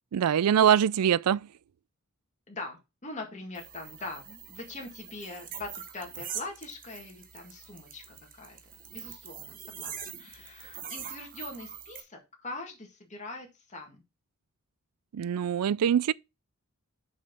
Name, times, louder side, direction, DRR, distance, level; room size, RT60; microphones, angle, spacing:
voice 1, 0.1-1.5 15.1-16.1, right 9 dB, 90° right, 0.4 m, -23 dB
voice 2, 2.5-8.6 8.9-14.0, left 2 dB, 35° left, 1.8 m, -42 dB
sound 1, 3.5-12.0, right 8 dB, 40° right, 1.2 m, -43 dB
6.4 x 5.5 x 5.9 m
head